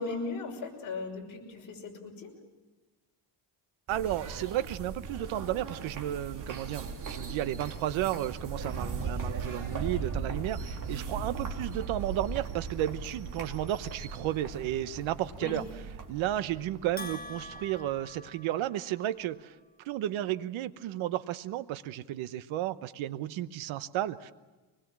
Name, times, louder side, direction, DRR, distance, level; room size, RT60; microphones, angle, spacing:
voice 1, 0.0-2.3 15.4-15.6, left 3 dB, 45° left, 1 dB, 5.9 m, -37 dB
sound 1, 3.9-18.3, right 5 dB, 40° right, 3.1 m, -38 dB
voice 2, 3.9-15.6 16.1-19.5 19.8-24.3, right 13 dB, 85° right, 14 dB, 1.0 m, -33 dB
Bell, 17.0-19.1, left 2 dB, 20° left, 1.3 m, -45 dB
24.0 x 20.5 x 7.4 m, 1.2 s
cardioid pair, 130°, 46 cm